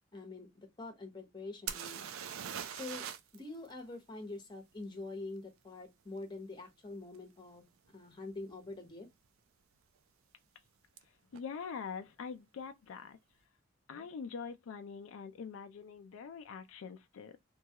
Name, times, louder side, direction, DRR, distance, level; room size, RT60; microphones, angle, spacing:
voice 1, 0.1-2.1 2.7-3.1 3.3-7.6 7.9-9.1, left 2 dB, 20° left, 0.9 m, -45 dB
sound 1, 1.7-3.4 3.7-3.8 7.2-7.3 7.9-8.1 8.3-8.9 11.0-11.1 11.3-11.4, right 8 dB, 90° right, 0.4 m, -42 dB
voice 2, 11.3-13.2 13.9-17.4, left 6 dB, 80° left, 0.4 m, -44 dB
3.0 x 2.3 x 2.8 m
head